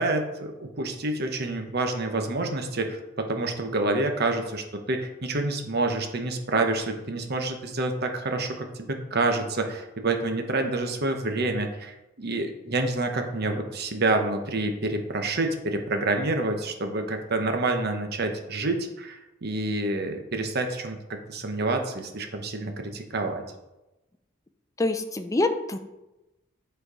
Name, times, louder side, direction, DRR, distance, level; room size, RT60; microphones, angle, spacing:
voice 1, 0.0-23.4, right 2 dB, 55° right, 5 dB, 1.0 m, -28 dB
voice 2, 24.8-25.8, left 2 dB, 15° left, 8 dB, 0.5 m, -25 dB
8.0 x 4.5 x 4.9 m, 0.99 s
head